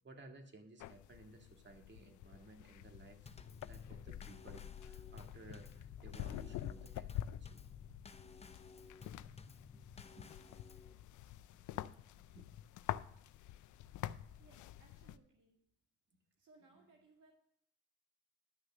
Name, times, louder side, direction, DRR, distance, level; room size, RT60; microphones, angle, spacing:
voice 1, 0.0-3.2 3.7-7.6 9.1-9.3 9.7-9.8 10.2-10.6 11.3-12.5 16.7-16.8, right 2 dB, 40° right, 3 dB, 1.9 m, -58 dB
sound 1, 0.8-15.2, left 13 dB, 75° left, 0.5 m, -47 dB
Drum kit / Snare drum / Bass drum, 3.3-10.9, left 4 dB, 20° left, 0.7 m, -56 dB
voice 2, 14.4-15.6 16.4-17.3, right 3 dB, 80° right, -1 dB, 2.1 m, -66 dB
11.5 x 6.4 x 6.0 m, 0.69 s
cardioid pair, 90°, 30 cm